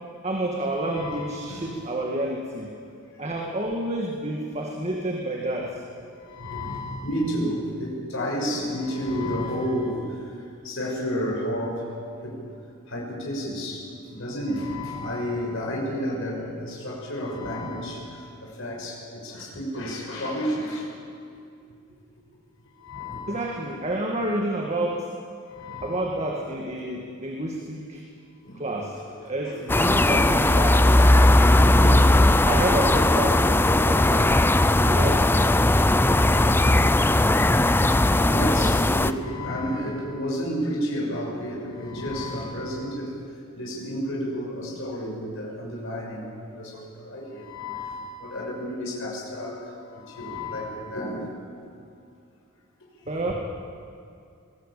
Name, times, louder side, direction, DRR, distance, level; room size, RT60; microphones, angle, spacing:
voice 1, 0.2-2.7 3.2-5.8 23.3-25.1 25.8-28.0 28.5-28.9 29.2-32.1 32.4-34.3 34.8-35.3 36.1-36.9 53.1-53.3, right 1 dB, 30° right, 0 dB, 2.0 m, -29 dB
voice 2, 0.9-1.7 6.2-10.0 10.6-11.9 12.2-12.4 12.9-18.0 18.4-20.9 22.8-23.4 25.5-26.0 27.3-27.4 28.4-28.6 29.4-30.0 31.0-31.7 37.4-43.1 43.5-49.6 49.9-51.2, equal, 60° left, -2 dB, 6.3 m, -31 dB
sound 1, 29.7-39.1, left 1 dB, 10° left, 0.5 m, -18 dB
22.0 x 19.0 x 8.5 m, 2.4 s
head